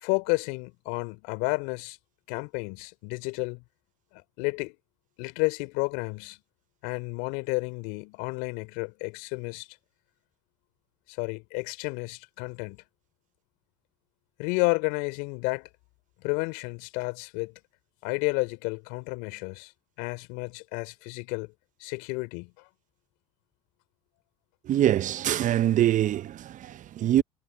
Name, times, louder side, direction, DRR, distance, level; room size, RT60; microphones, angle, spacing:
voice 1, 0.0-2.0 2.3-3.6 4.1-4.8 5.2-6.4 6.8-9.7 11.1-12.8 14.4-15.7 16.2-17.5 18.0-19.7 20.0-21.5 21.8-22.7, left 29 dB, 70° left, 3.5 m, -31 dB
voice 2, 24.6-27.2, right 12 dB, 45° right, 0.9 m, -24 dB
hypercardioid pair, 70°, 18 cm